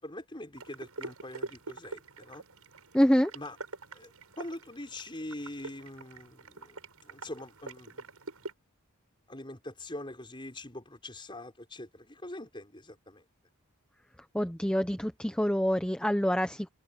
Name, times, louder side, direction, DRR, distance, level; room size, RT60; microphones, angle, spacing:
voice 1, 0.0-2.5 3.3-3.6 3.9-8.1 9.3-13.2, left 1 dB, 20° left, 5.6 m, -43 dB
sound 1, 0.5-8.5, right 3 dB, 80° right, 6.3 m, -45 dB
voice 2, 2.9-3.3 14.3-16.7, equal, 5° left, 1.0 m, -26 dB
head